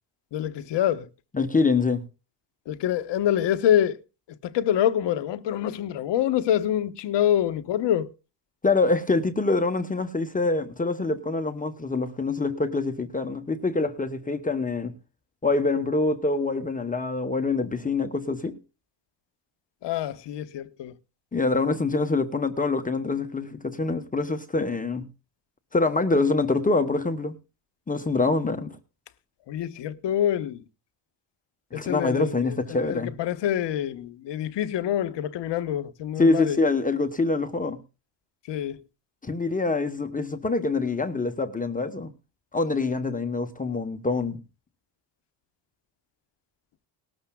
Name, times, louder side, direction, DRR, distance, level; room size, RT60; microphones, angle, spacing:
voice 1, 0.3-1.1 2.7-4.0 4.4-8.1 19.8-20.9 29.5-30.6 31.7-36.6 38.5-38.8, left 10 dB, 60° left, 1.0 m, -26 dB
voice 2, 1.3-2.0 8.6-14.9 15.4-18.6 21.3-25.1 25.7-27.4 27.9-28.8 31.7-33.1 36.2-37.8 39.2-42.1 42.5-44.4, left 3 dB, 15° left, 0.9 m, -25 dB
18.5 x 13.0 x 2.2 m
cardioid pair, 100°, 49 cm